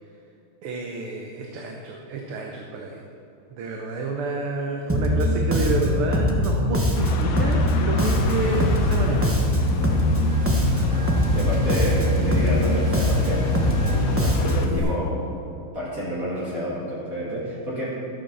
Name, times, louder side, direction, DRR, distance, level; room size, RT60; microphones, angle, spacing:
voice 1, 0.6-3.1 3.5-9.3, right 3 dB, 85° right, 1 dB, 1.9 m, -29 dB
Bass guitar, 4.9-14.8, left 1 dB, 15° right, 0.5 m, -22 dB
sound 1, 6.9-14.7, left 4 dB, 60° left, 1.0 m, -31 dB
sound 2, 8.0-14.9, right 2 dB, 60° right, 2.9 m, -30 dB
voice 2, 10.8-13.5 13.8-15.1 15.7-17.9, equal, 40° right, -8 dB, 2.8 m, -29 dB
12.5 x 7.5 x 6.8 m, 2.7 s
omnidirectional pair, 2.3 m